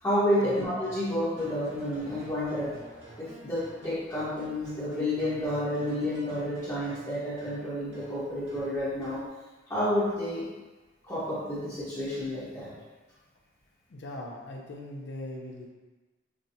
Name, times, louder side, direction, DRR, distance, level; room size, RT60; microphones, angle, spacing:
voice 1, 0.0-2.7 3.2-9.2 9.7-10.5 11.0-12.7, left 1 dB, 15° left, -11 dB, 0.9 m, -30 dB
sound 1, 0.6-9.3, right 1 dB, 85° right, 1.0 m, -50 dB
voice 2, 13.9-15.7, left 1 dB, 65° left, 0 dB, 0.6 m, -40 dB
6.0 x 2.2 x 2.7 m, 1.2 s
head